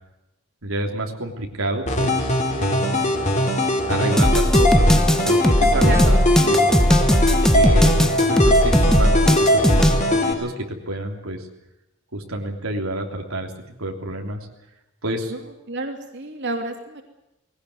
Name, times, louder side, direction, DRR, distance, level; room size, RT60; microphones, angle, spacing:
voice 1, 0.6-3.1 3.9-5.9 6.5-6.8 7.5-9.8 10.1-11.5 12.1-13.5 13.8-14.4 15.0-15.3, right 1 dB, 85° right, 2 dB, 3.3 m, -29 dB
sound 1, 1.9-10.3, left 1 dB, 35° left, 4.0 m, -20 dB
sound 2, 4.2-10.0, equal, 5° left, 1.2 m, -17 dB
voice 2, 5.6-6.6 15.3-15.4 15.7-17.0, right 2 dB, 55° right, 3 dB, 3.1 m, -30 dB
20.0 x 18.0 x 9.6 m, 0.88 s
head